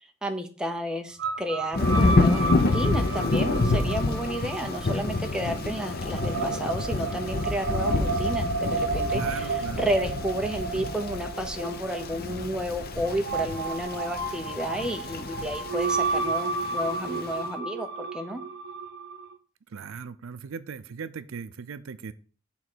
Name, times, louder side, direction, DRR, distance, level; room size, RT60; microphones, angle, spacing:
voice 1, 0.0-18.4, equal, 5° right, 4 dB, 0.8 m, -32 dB
sound 1, 1.2-19.3, right 3 dB, 55° right, 1.1 m, -32 dB
Thunder / Rain, 1.7-17.3, left 2 dB, 50° left, 0.7 m, -28 dB
voice 2, 9.1-9.9 19.7-22.1, right 6 dB, 80° right, 14 dB, 0.5 m, -38 dB
7.0 x 3.7 x 6.1 m, 0.38 s
head